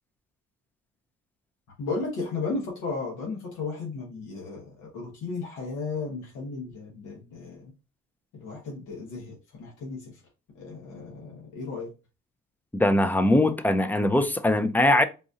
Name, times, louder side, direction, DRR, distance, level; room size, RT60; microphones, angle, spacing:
voice 1, 1.8-7.7 8.3-10.0 10.6-11.9, left 4 dB, 90° left, 1.2 m, -34 dB
voice 2, 12.7-15.0, left 1 dB, 5° left, 0.4 m, -21 dB
4.1 x 2.6 x 2.4 m
cardioid pair, 90°, 30 cm